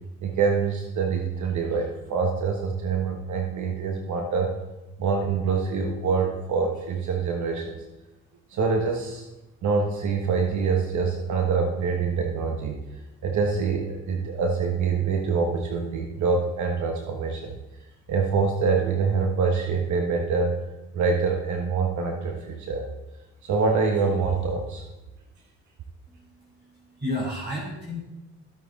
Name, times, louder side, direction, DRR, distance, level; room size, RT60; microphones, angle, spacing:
voice 1, 0.2-4.5 5.0-7.8 8.5-9.3 9.6-12.9 13.2-17.5 18.1-20.6 20.9-22.8 23.4-24.8, right 5 dB, 70° right, 3 dB, 1.2 m, -25 dB
voice 2, 26.1-28.0, left 1 dB, 35° right, -4 dB, 3.6 m, -33 dB
13.0 x 8.0 x 4.0 m, 1.0 s
cardioid pair, 90°, 30 cm